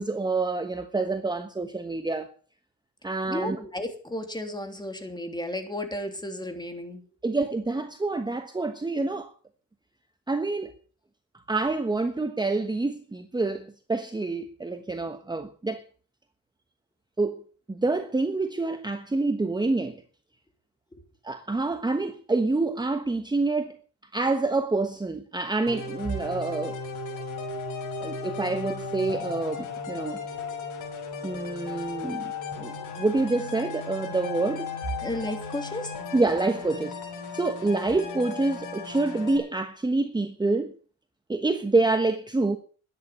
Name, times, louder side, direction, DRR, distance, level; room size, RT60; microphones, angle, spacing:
voice 1, 0.0-2.3 3.0-3.6 7.2-9.3 10.3-10.7 11.5-15.8 17.2-17.4 17.7-20.0 21.2-23.7 24.1-26.8 28.0-30.2 31.2-32.3 32.6-34.7 36.1-37.0 37.3-40.7 41.3-42.6, right 3 dB, 15° right, 1.2 m, -27 dB
voice 2, 3.3-7.1 20.9-21.0 32.5-32.6 35.0-35.9, left 1 dB, 15° left, 3.2 m, -33 dB
sound 1, 25.7-39.4, left 5 dB, 80° left, 6.4 m, -36 dB
12.5 x 9.9 x 6.9 m
cardioid pair, 90°, 30 cm